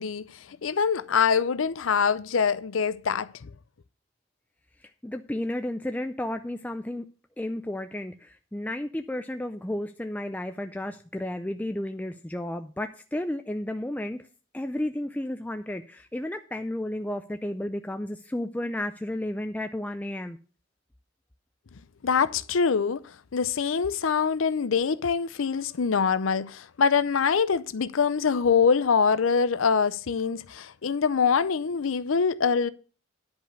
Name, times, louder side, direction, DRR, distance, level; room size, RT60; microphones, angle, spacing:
voice 1, 0.0-3.5 22.0-23.0 23.3-32.7, left 6 dB, 85° left, 0.6 m, -24 dB
voice 2, 4.8-7.1 7.4-14.3 14.5-20.4, left 1 dB, 10° left, 0.4 m, -32 dB
10.5 x 5.2 x 6.7 m
head